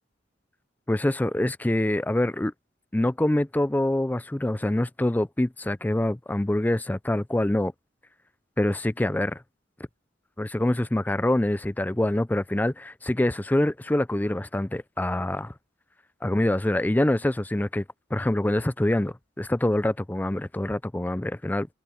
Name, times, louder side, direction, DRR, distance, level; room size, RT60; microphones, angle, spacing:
voice 1, 0.9-2.5 2.9-7.7 8.6-9.4 10.4-15.5 16.2-17.8 18.1-21.7, left 1 dB, 10° left, 0.4 m, -25 dB
head